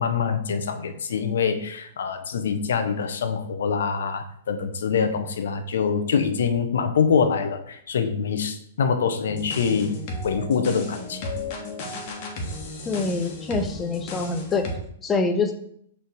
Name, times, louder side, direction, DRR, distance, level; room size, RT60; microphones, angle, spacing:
voice 1, 0.0-11.2, left 6 dB, 65° left, 8 dB, 0.7 m, -25 dB
sound 1, 9.3-14.8, left 1 dB, 45° left, 1.4 m, -34 dB
voice 2, 12.9-14.7 15.0-15.5, left 4 dB, 20° left, 6 dB, 0.8 m, -25 dB
6.6 x 3.4 x 4.6 m, 0.68 s
figure-of-eight pair, 105°, 0 cm